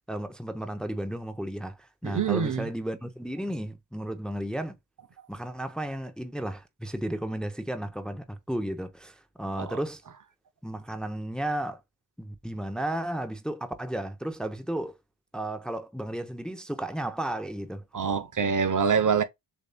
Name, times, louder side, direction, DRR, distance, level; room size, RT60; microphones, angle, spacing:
voice 1, 0.1-4.8 5.3-10.0 10.6-11.8 12.2-15.0 15.3-17.9, right 1 dB, ahead, 0.6 m, -33 dB
voice 2, 2.0-2.7 9.6-9.8 17.9-19.2, right 6 dB, 45° right, 0.7 m, -25 dB
6.5 x 2.7 x 2.2 m
cardioid pair, 75°, 42 cm